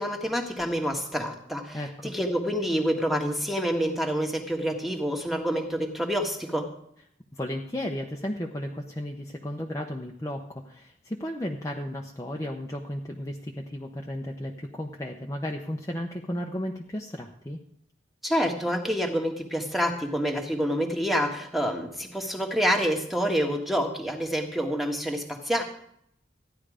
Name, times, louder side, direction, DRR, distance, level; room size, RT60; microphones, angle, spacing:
voice 1, 0.0-6.7 18.2-25.6, equal, ahead, 3 dB, 1.5 m, -27 dB
voice 2, 1.7-2.1 7.3-17.6, left 1 dB, 15° left, 0 dB, 0.8 m, -34 dB
15.0 x 10.5 x 5.0 m, 0.71 s
head